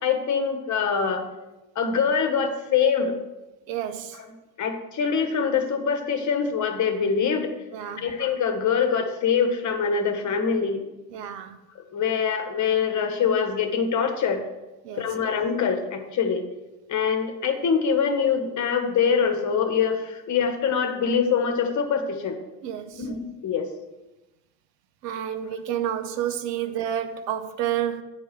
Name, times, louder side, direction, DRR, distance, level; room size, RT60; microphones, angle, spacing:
voice 1, 0.0-1.3 1.7-3.2 4.1-4.3 4.6-7.5 8.0-10.9 11.9-14.4 15.0-16.4 16.9-22.4 22.9-23.7, left 6 dB, 35° left, 1.4 m, -24 dB
voice 2, 3.7-4.2 7.7-8.1 11.1-11.6 14.8-15.1 22.6-23.0 25.0-28.0, right 10 dB, 75° right, 0.9 m, -29 dB
9.6 x 4.6 x 6.1 m
hypercardioid pair, 75°, 49 cm